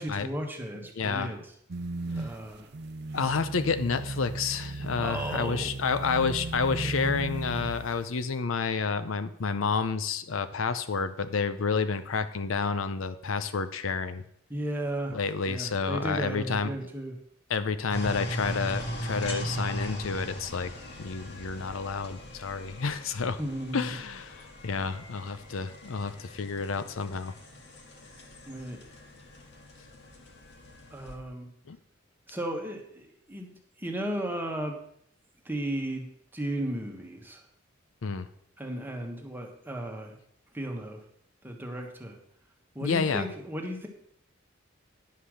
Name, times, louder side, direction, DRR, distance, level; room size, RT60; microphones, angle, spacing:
voice 1, 0.0-1.4 2.1-2.7 4.9-5.7 6.8-6.9 14.5-15.2 15.5-17.2 23.4-23.9 28.5-28.8 30.9-31.5 32.3-33.5 33.8-34.8 35.4-36.0 36.3-37.5 38.6-40.2 40.5-41.0 41.4-42.2 42.7-43.9, right 1 dB, 10° right, 2 dB, 1.4 m, -35 dB
voice 2, 1.0-1.3 3.1-14.2 15.1-16.9 17.5-20.7 21.0-23.4 23.7-27.3 31.7-31.8 38.0-38.3 42.8-43.3, left 5 dB, 80° left, 11 dB, 0.6 m, -30 dB
sound 1, 1.7-8.2, right 2 dB, 55° right, 0.6 m, -36 dB
sound 2, 17.9-31.2, equal, 60° left, 1.6 m, -39 dB
10.0 x 5.6 x 6.4 m, 0.69 s
head